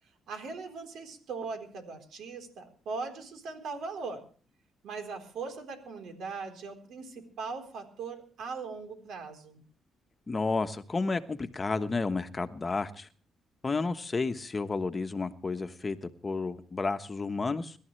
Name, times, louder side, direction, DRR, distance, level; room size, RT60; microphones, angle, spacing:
voice 1, 0.3-4.3 4.8-9.6, right 4 dB, 75° right, 5 dB, 3.9 m, -39 dB
voice 2, 10.3-13.1 13.6-17.8, left 3 dB, 30° left, 8 dB, 1.2 m, -31 dB
24.5 x 12.5 x 3.3 m, 0.41 s
cardioid pair, 90°, 0 cm